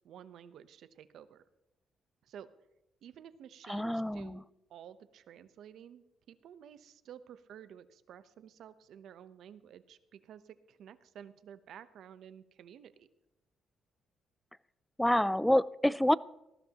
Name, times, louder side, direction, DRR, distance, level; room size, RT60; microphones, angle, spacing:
voice 1, 0.0-1.4 2.2-2.5 3.0-4.4 4.7-13.1, right 9 dB, 70° right, 12 dB, 0.9 m, -52 dB
voice 2, 3.7-4.4 15.0-16.2, left 1 dB, 5° left, 20 dB, 0.4 m, -27 dB
18.5 x 14.0 x 3.0 m, 0.91 s
cardioid pair, 90°, 0 cm